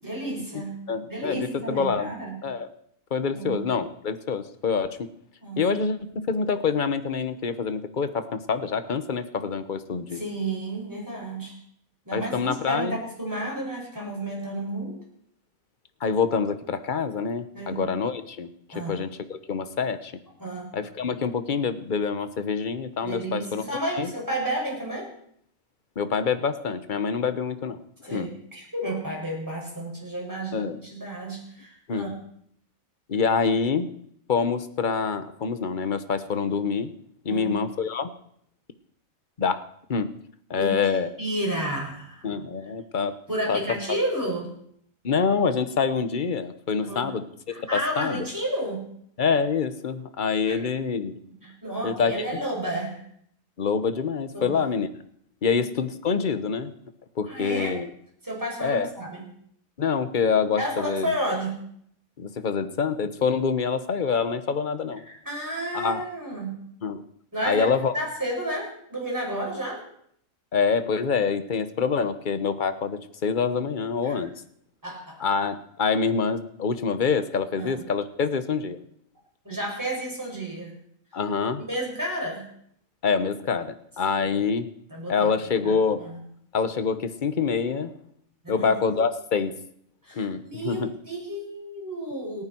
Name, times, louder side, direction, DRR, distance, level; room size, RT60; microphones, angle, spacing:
voice 1, 0.0-0.8 1.1-2.4 3.3-3.6 5.4-5.7 10.1-11.6 12.0-15.0 17.5-17.8 18.7-19.1 20.4-20.8 23.0-25.1 28.0-32.3 37.2-37.6 40.6-42.3 43.3-44.5 46.8-47.1 47.5-48.9 50.5-50.6 51.4-53.0 54.3-54.7 55.5-55.6 57.3-57.8 58.2-59.2 60.6-61.6 65.0-66.6 67.3-69.9 74.0-74.3 74.8-75.2 77.6-77.8 79.4-80.8 81.6-82.5 84.9-85.7 86.0-86.2 88.4-89.0 90.0-92.4, right 1 dB, 15° right, -2 dB, 6.5 m, -32 dB
voice 2, 0.9-2.1 2.4-2.7 3.1-5.1 5.6-10.2 12.1-13.0 16.0-18.5 18.7-20.1 20.7-23.6 24.0-24.1 26.0-27.8 28.1-28.3 30.5-30.8 31.9-32.1 33.1-33.9 34.3-36.9 37.2-38.1 39.4-40.1 40.5-41.1 42.2-43.2 43.5-43.6 45.0-47.2 47.6-47.7 48.0-48.3 49.2-51.2 51.8-52.1 53.6-54.9 55.4-56.7 57.2-57.9 58.6-58.9 59.8-61.1 62.2-65.0 65.7-66.0 66.8-67.0 67.4-67.9 70.5-74.4 75.2-78.8 81.1-81.6 83.0-84.7 85.1-86.1 86.5-87.9 88.5-89.5 90.1-90.9, left 5 dB, 40° left, 10 dB, 1.2 m, -26 dB
29.5 x 10.0 x 4.6 m, 0.68 s
omnidirectional pair, 1.4 m